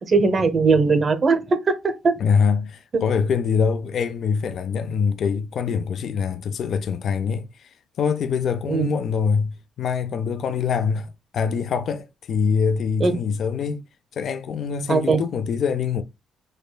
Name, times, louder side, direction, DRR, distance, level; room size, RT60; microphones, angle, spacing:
voice 1, 0.1-2.1 2.9-3.0 8.7-8.9 13.0-13.1 14.9-15.2, right 4 dB, 40° right, 0.7 m, -19 dB
voice 2, 2.2-13.8 14.1-16.0, left 6 dB, 65° left, 0.3 m, -24 dB
4.9 x 2.2 x 2.2 m
cardioid pair, 90°, 0 cm